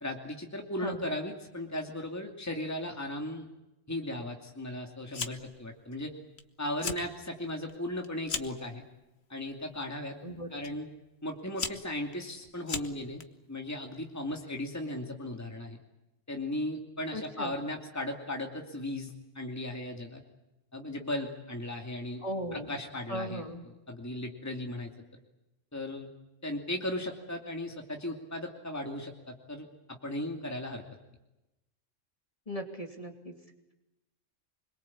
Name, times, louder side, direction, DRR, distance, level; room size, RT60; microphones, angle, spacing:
voice 1, 0.0-3.5 3.9-6.1 6.6-8.8 9.3-10.2 10.5-10.9 11.2-13.2 13.5-15.8 16.3-20.2 20.7-22.2 22.5-24.9 25.7-26.1 26.4-30.8, left 1 dB, 15° left, 2 dB, 2.6 m, -36 dB
Fire, 5.1-5.6 5.9-6.4 6.7-7.1 7.5-8.6 9.4-9.8 10.6-10.7 11.3-13.2, left 5 dB, 55° left, 1.6 m, -37 dB
voice 2, 10.2-10.6 17.1-17.6 22.2-22.8 23.1-23.6 32.5-33.3, equal, 30° left, 3 dB, 2.9 m, -37 dB
25.5 x 22.5 x 8.6 m, 0.96 s
omnidirectional pair, 1.3 m